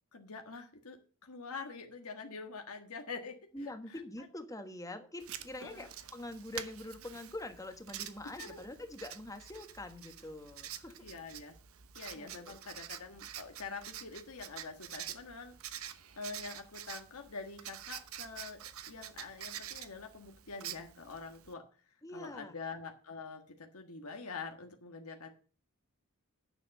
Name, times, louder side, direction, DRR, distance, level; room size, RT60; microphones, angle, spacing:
voice 1, 0.1-4.0 5.6-5.8 8.4-8.6 11.0-11.6 11.9-15.6 16.2-21.6 22.1-25.3, left 4 dB, 80° left, 4 dB, 1.5 m, -45 dB
voice 2, 3.5-11.1 12.1-12.6 22.0-22.6, left 1 dB, 15° left, 7 dB, 1.3 m, -45 dB
Writing, 5.2-21.5, right 10 dB, 70° right, 0.9 m, -47 dB
9.6 x 6.9 x 6.5 m, 0.38 s
head